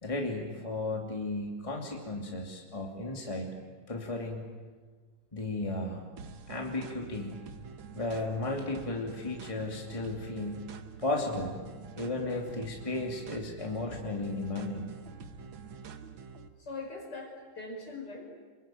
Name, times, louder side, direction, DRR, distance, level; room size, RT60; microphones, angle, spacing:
voice 1, 0.0-3.6 3.9-4.4 5.3-6.0 6.5-7.4 7.9-10.7 11.0-11.6 12.0-14.9, left 2 dB, 15° left, 0 dB, 2.8 m, -34 dB
sound 1, 6.2-16.5, right 5 dB, 70° right, 2.0 m, -46 dB
voice 2, 16.6-18.3, left 3 dB, 55° left, 2 dB, 5.8 m, -41 dB
27.5 x 23.0 x 9.2 m, 1.5 s
omnidirectional pair, 2.2 m